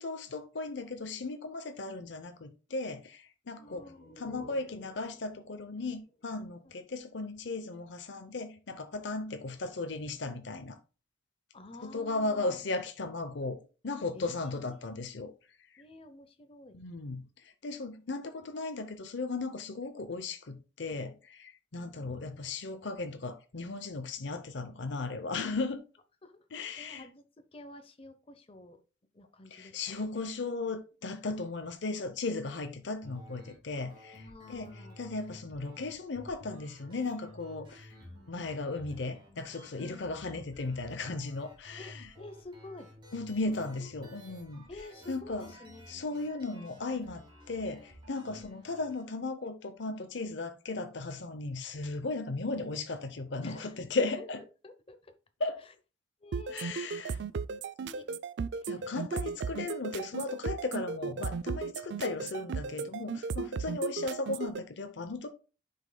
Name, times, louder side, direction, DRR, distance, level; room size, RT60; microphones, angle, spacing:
voice 1, 0.0-10.8 11.8-13.6 13.8-15.3 15.7-15.8 16.7-25.8 26.5-27.0 29.5-37.9 38.3-42.1 43.1-44.6 45.1-45.5 45.9-54.4 55.4-55.6 56.5-57.2 58.7-65.3, left 3 dB, 65° left, 0.7 m, -36 dB
sound 1, 3.5-7.1, left 1 dB, 45° left, 1.5 m, -56 dB
voice 2, 3.6-4.1 6.6-6.7 11.5-12.6 14.1-14.8 15.0-15.3 15.8-16.8 26.2-27.3 27.5-28.8 29.1-30.1 34.1-35.0 37.9-38.3 39.8-40.1 41.8-42.9 43.5-43.9 44.7-46.0 48.3-48.6 53.4-54.3 54.6-55.1 56.2-57.0 57.5-57.6 57.8-58.1 58.6-58.9 61.9-62.0 63.0-63.2, left 2 dB, 30° left, 0.7 m, -50 dB
sound 2, 33.0-49.0, equal, 25° right, 2.7 m, -53 dB
sound 3, 56.3-64.6, right 5 dB, 65° right, 0.3 m, -35 dB
9.6 x 5.6 x 2.2 m
head